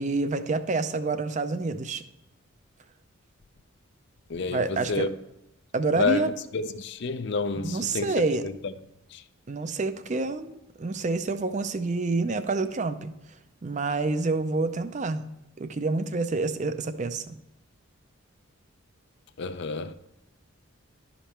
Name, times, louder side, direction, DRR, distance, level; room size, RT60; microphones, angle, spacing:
voice 1, 0.0-2.0 4.5-5.1 5.7-6.3 7.5-8.4 9.5-13.1 13.6-15.2 15.6-17.4, right 3 dB, 35° right, 0.5 m, -28 dB
voice 2, 4.3-5.1 6.0-8.1 8.4-8.7 9.1-9.2 19.4-19.9, left 4 dB, 55° left, 0.5 m, -29 dB
11.5 x 5.2 x 4.3 m
head